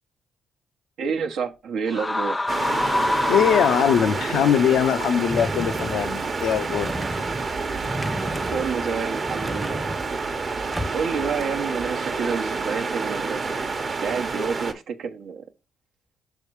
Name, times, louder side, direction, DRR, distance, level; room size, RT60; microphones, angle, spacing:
voice 1, 1.0-2.5 8.5-9.8 10.9-13.7 14.0-15.4, right 6 dB, 75° right, 0.9 m, -29 dB
sound 1, 1.9-4.5, left 2 dB, 20° left, 0.3 m, -25 dB
sound 2, 2.5-14.7, right 4 dB, 45° right, 1.0 m, -28 dB
voice 2, 3.3-6.9, left 9 dB, 75° left, 0.5 m, -21 dB
sound 3, 5.3-11.3, equal, 5° right, 0.7 m, -34 dB
6.3 x 3.6 x 4.6 m
supercardioid pair, 60°, 0 cm